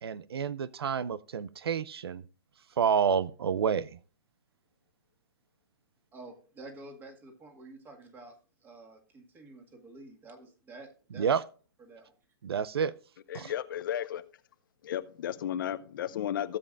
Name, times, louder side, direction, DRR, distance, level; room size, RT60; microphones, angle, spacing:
voice 1, 0.0-2.2 2.8-4.0 11.2-11.4 12.4-12.9 13.3-13.5, right 7 dB, 80° right, 0.5 m, -29 dB
voice 2, 6.1-11.3 11.8-12.2, right 2 dB, 15° right, 2.0 m, -49 dB
voice 3, 13.3-14.2 14.8-16.6, left 10 dB, 55° left, 0.7 m, -33 dB
16.0 x 7.8 x 2.5 m
hypercardioid pair, 145°, 13 cm